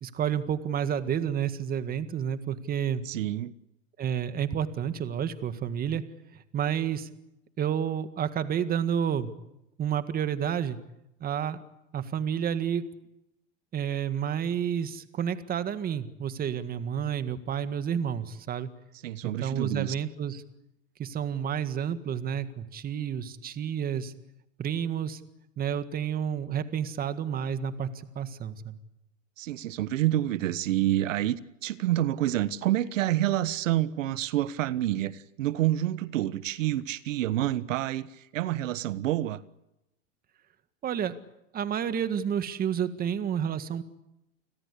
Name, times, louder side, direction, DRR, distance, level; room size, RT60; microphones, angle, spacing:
voice 1, 0.0-3.0 4.0-6.0 6.3-7.1 7.6-9.3 9.8-10.8 11.2-11.6 11.9-12.8 13.7-18.7 19.2-20.4 21.0-24.1 24.6-25.2 25.6-28.8 40.8-41.1 41.5-43.8, right 8 dB, 25° right, 1.8 m, -30 dB
voice 2, 3.0-3.5 19.0-19.9 29.4-39.4, right 13 dB, 75° right, 1.3 m, -28 dB
29.5 x 21.0 x 8.4 m
supercardioid pair, 140°, 39 cm